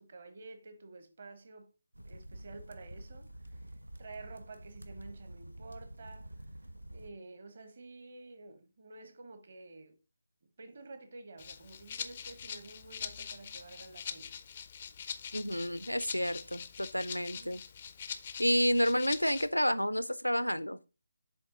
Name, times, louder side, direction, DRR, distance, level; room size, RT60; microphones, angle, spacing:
voice 1, 0.0-1.7 2.0-6.5 6.9-10.0 10.6-14.4 17.1-17.6, right 3 dB, 45° right, 1.0 m, -51 dB
sound 1, 1.9-7.1, right 1 dB, 80° right, 0.7 m, -48 dB
Rattle (instrument), 11.4-19.5, left 7 dB, 30° left, 0.4 m, -43 dB
voice 2, 15.3-17.6 18.4-20.8, equal, 85° left, 0.5 m, -30 dB
7.2 x 3.6 x 3.8 m
figure-of-eight pair, 150°, 0 cm